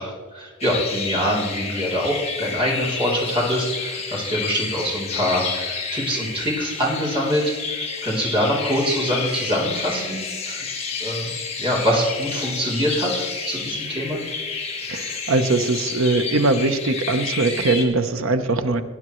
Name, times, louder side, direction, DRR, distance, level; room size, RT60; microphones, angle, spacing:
voice 1, 0.0-10.6 11.0-11.3 11.6-14.2, equal, 25° right, -4 dB, 3.2 m, -24 dB
sound 1, 0.6-17.9, left 5 dB, 30° left, 1.5 m, -30 dB
voice 2, 14.9-18.8, right 2 dB, 80° right, 9 dB, 0.8 m, -21 dB
18.5 x 9.5 x 3.1 m, 1.4 s
head